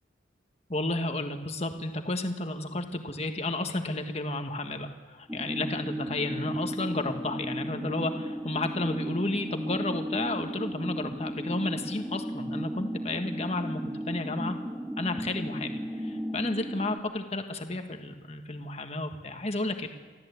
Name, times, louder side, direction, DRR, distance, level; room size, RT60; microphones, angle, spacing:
voice 1, 0.7-14.5 15.0-19.9, left 2 dB, 35° left, 6 dB, 1.6 m, -32 dB
sound 1, 5.3-17.0, equal, 5° right, 0.9 m, -35 dB
24.5 x 14.5 x 8.3 m, 1.4 s
head